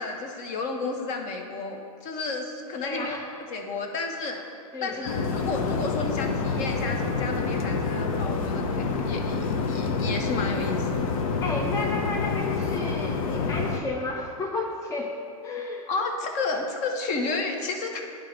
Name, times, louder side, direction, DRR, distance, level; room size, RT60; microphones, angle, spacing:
voice 1, 0.0-3.2 3.5-4.4 4.8-11.1 15.9-18.0, left 3 dB, 40° left, 3 dB, 1.0 m, -32 dB
voice 2, 2.8-3.3 4.3-4.4 4.7-5.1 11.4-15.9, left 3 dB, 15° left, -1 dB, 0.6 m, -32 dB
sound 1, 5.1-13.8, left 4 dB, 70° left, 0.7 m, -27 dB
9.9 x 3.5 x 5.1 m, 2.3 s
hypercardioid pair, 115°, 19 cm